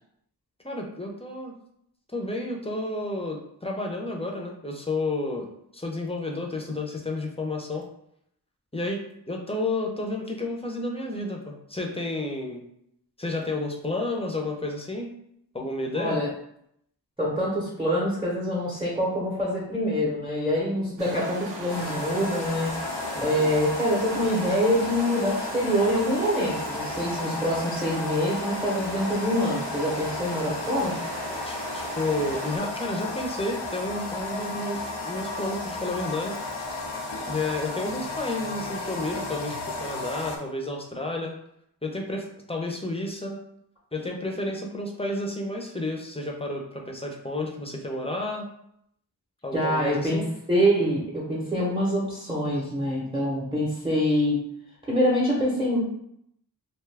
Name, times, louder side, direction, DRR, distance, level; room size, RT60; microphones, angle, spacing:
voice 1, 0.6-1.6 2.1-5.5 5.7-7.8 8.7-9.0 9.3-12.6 13.2-15.1 15.5-16.2 23.1-23.5 31.5-36.4 37.3-41.4 41.8-43.4 43.9-48.5 49.4-50.3, left 2 dB, 15° left, 0 dB, 0.5 m, -31 dB
voice 2, 15.9-16.3 17.2-22.7 23.2-30.9 49.5-50.2 50.5-54.4 54.9-55.8, equal, 10° right, -6 dB, 0.8 m, -25 dB
sound 1, 21.0-32.6, right 2 dB, 85° right, 0.7 m, -38 dB
sound 2, 21.7-40.4, left 3 dB, 85° left, 0.6 m, -34 dB
2.7 x 2.3 x 3.3 m, 0.74 s
wide cardioid pair, 50°, 42 cm